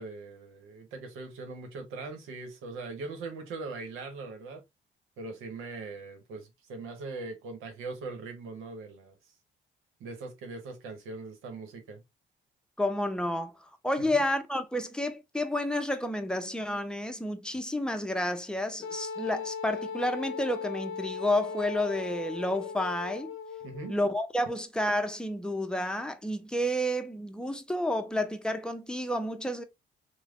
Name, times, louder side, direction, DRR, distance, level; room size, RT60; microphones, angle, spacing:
voice 1, 0.0-4.6 5.2-9.1 10.0-12.0 14.0-14.2 23.6-23.9, right 3 dB, 85° right, 1.0 m, -41 dB
voice 2, 12.8-13.5 13.8-23.3 23.9-29.6, left 1 dB, 5° left, 0.6 m, -30 dB
Wind instrument woodwind instrument, 18.8-24.0, left 5 dB, 80° left, 0.7 m, -38 dB
3.2 x 2.2 x 3.6 m
supercardioid pair, 75°, 21 cm